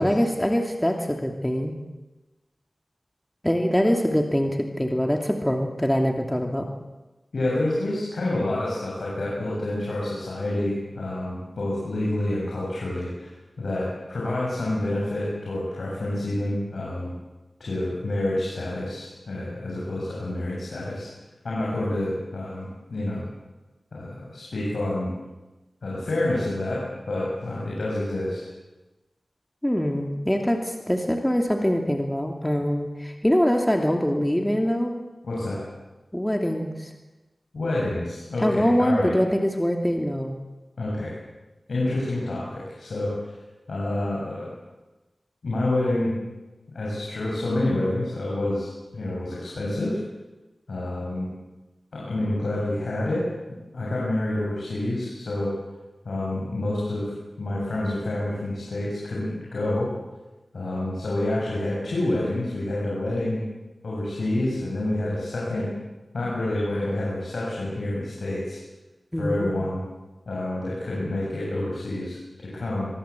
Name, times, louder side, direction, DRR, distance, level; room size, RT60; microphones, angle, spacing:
voice 1, 0.0-1.7 3.4-6.7 29.6-34.9 36.1-36.9 38.4-40.4 69.1-69.5, equal, 10° left, 2 dB, 2.7 m, -23 dB
voice 2, 7.3-17.1 17.6-21.1 21.4-23.2 23.9-25.1 25.8-28.5 35.2-35.6 37.5-39.1 40.8-41.1 41.7-43.3 43.7-44.5 45.4-46.2 46.7-50.0 50.7-51.3 51.9-53.2 53.7-55.5 56.0-59.9 60.5-63.4 63.8-65.7 66.1-68.6 69.2-69.8 70.3-72.9, left 1 dB, 85° left, -5 dB, 7.4 m, -28 dB
23.5 x 23.0 x 8.5 m, 1.1 s
wide cardioid pair, 55°, 0 cm